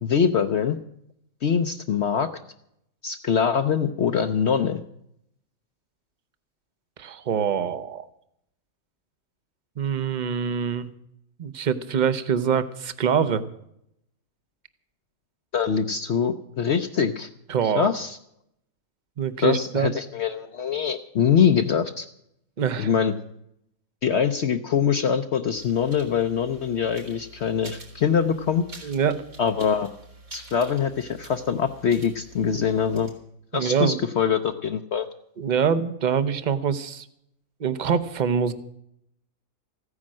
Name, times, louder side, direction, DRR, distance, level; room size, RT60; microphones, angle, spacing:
voice 1, 0.0-0.8 1.4-2.3 3.0-4.8 15.5-17.3 17.6-18.2 19.4-22.1 22.8-23.1 24.0-28.6 29.4-29.9 30.3-33.1 33.5-35.1, left 7 dB, 60° left, 7 dB, 0.9 m, -23 dB
voice 2, 7.0-8.1 9.8-10.9 11.4-13.4 17.5-17.9 19.2-19.9 22.6-22.9 28.8-29.2 33.5-34.0 35.4-37.0 37.6-38.5, right 7 dB, 40° right, 13 dB, 0.8 m, -24 dB
sound 1, 25.6-33.1, right 3 dB, 75° right, 4.4 m, -47 dB
15.0 x 9.8 x 7.5 m, 0.76 s
omnidirectional pair, 1.5 m